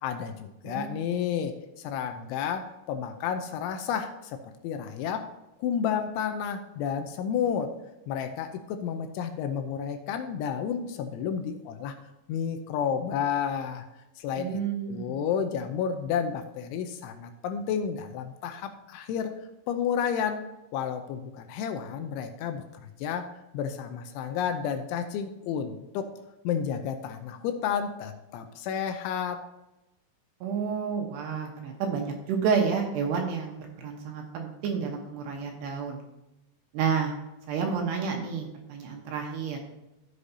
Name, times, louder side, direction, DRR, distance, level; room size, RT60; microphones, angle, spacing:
voice 1, 0.0-5.3 5.6-7.8 8.1-12.0 12.3-13.9 14.2-14.6 14.9-19.3 19.7-20.4 20.7-23.3 23.5-26.1 26.4-29.5, left 7 dB, 80° left, 7 dB, 2.9 m, -31 dB
voice 2, 0.6-1.0 14.4-15.2 30.4-36.0 36.7-37.1 37.5-39.6, right 6 dB, 70° right, 1 dB, 2.9 m, -30 dB
13.5 x 8.0 x 2.7 m, 0.97 s
omnidirectional pair, 5.7 m